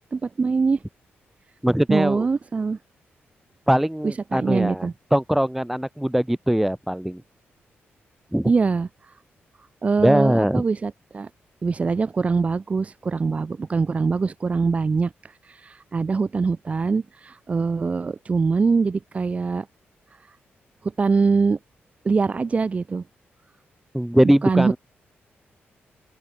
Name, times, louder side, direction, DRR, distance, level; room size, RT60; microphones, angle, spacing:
voice 1, 0.1-0.8 1.9-2.8 4.0-4.9 8.4-9.1 9.8-11.3 11.6-19.7 20.2-20.4 20.8-21.6 22.0-23.0 24.2-24.8, right 4 dB, 30° right, 0.8 m, -23 dB
voice 2, 1.6-2.3 3.7-7.2 8.3-8.5 10.0-10.6 23.9-24.8, equal, 5° right, 0.4 m, -21 dB
open air
wide cardioid pair, 125°, 4 cm